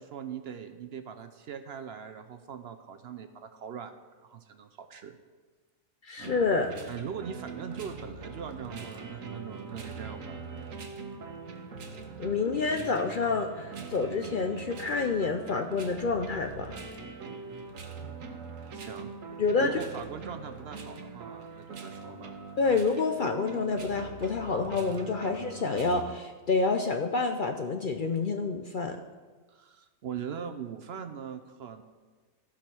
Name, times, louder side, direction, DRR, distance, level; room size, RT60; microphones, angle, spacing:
voice 1, 0.0-3.9 4.2-5.2 6.9-10.4 18.7-19.1 19.6-22.4 29.5-31.8, right 7 dB, 60° right, 9 dB, 0.8 m, -41 dB
voice 2, 6.0-6.7 12.2-16.8 19.4-19.7 22.6-29.0, left 4 dB, 55° left, 5 dB, 0.6 m, -28 dB
sound 1, 6.2-26.0, right 4 dB, 85° right, 1.4 m, -42 dB
15.0 x 5.0 x 6.1 m, 1.4 s
omnidirectional pair, 1.4 m